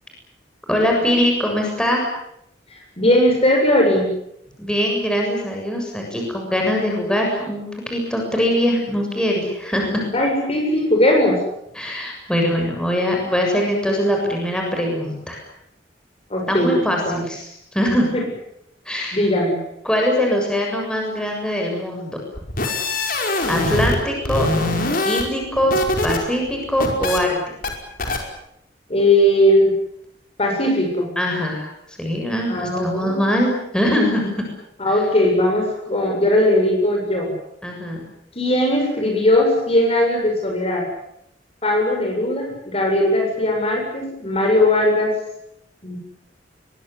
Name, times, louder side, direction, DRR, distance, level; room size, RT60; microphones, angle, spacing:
voice 1, 0.7-2.1 4.6-10.1 11.8-15.4 16.5-18.1 18.9-19.2 19.8-22.2 23.5-24.5 25.1-25.7 26.0-27.3 27.6-27.7 31.2-31.7 32.0-34.5 37.6-38.0, equal, 5° left, 0 dB, 7.3 m, -22 dB
voice 2, 3.0-4.1 10.1-11.4 16.3-16.7 17.0-17.2 18.1-18.2 19.1-19.6 28.9-29.7 30.4-31.1 32.5-33.2 34.8-37.3 38.3-40.9 41.6-45.1 45.8-46.0, left 1 dB, 35° left, 2 dB, 7.7 m, -18 dB
sound 1, 22.4-24.0 24.2-26.2 26.5-27.2 27.6-27.7 28.0-28.2, left 2 dB, 55° left, 5.3 m, -22 dB
23.0 x 22.0 x 9.8 m, 0.78 s
head